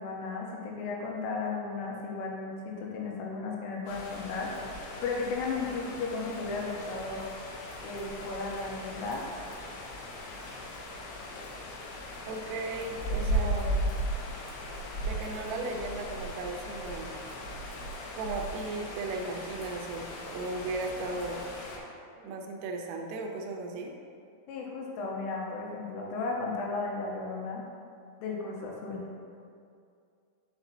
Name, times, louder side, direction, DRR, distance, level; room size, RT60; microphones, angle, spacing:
voice 1, 0.0-7.2 7.8-9.2 24.5-27.6 28.2-29.0, left 3 dB, 90° left, -1 dB, 3.3 m, -35 dB
sound 1, 3.9-21.8, right 1 dB, 75° left, 2.6 m, -37 dB
voice 2, 12.3-13.8 15.0-17.2 18.2-21.4 22.2-23.9, right 2 dB, 85° right, 2 dB, 3.3 m, -36 dB
8.3 x 7.0 x 2.8 m, 2.4 s
omnidirectional pair, 5.8 m